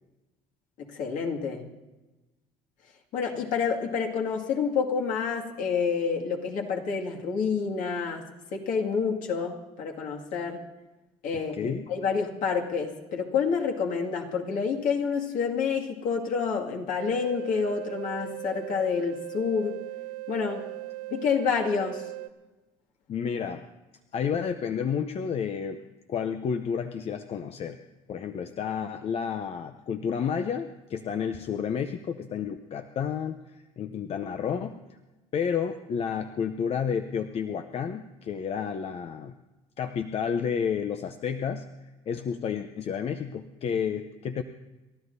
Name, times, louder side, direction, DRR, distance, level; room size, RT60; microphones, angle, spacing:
voice 1, 0.8-1.7 3.1-8.2 8.5-10.6 11.2-19.8 20.3-20.7 21.1-22.1, left 6 dB, 65° left, 1 dB, 2.2 m, -28 dB
voice 2, 11.3-11.9 23.1-23.6 24.1-25.8 26.1-27.8 28.1-35.0 35.3-39.3 39.8-41.7 42.1-44.4, left 7 dB, 45° left, 8 dB, 0.7 m, -31 dB
sound 1, 17.0-22.3, right 19 dB, 90° right, 0.7 m, -38 dB
30.0 x 13.0 x 2.7 m, 1.1 s
supercardioid pair, 80°, 14 cm